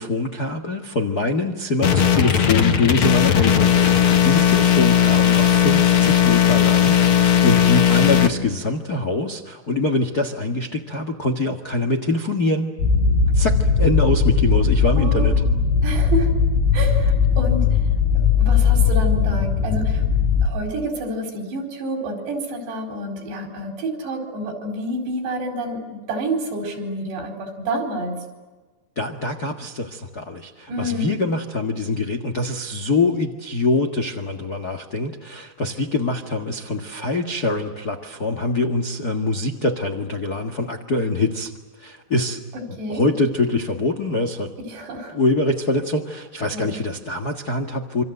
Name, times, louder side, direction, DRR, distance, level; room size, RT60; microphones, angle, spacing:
voice 1, 0.0-12.7 13.3-15.4 28.9-41.5 41.8-42.4 42.9-44.5 45.1-48.0, left 2 dB, 75° left, 6 dB, 0.9 m, -24 dB
sound 1, 1.8-8.3, left 9 dB, 55° left, 1.6 m, -16 dB
sound 2, 12.8-20.5, left 5 dB, 90° left, 5.6 m, -18 dB
voice 2, 15.0-16.3 16.7-17.9 18.1-20.0 20.4-28.2 30.7-31.1 42.5-43.1 44.7-45.2 46.5-46.8, right 1 dB, 80° right, 4 dB, 6.7 m, -29 dB
27.5 x 26.0 x 7.9 m, 1.3 s
omnidirectional pair, 4.8 m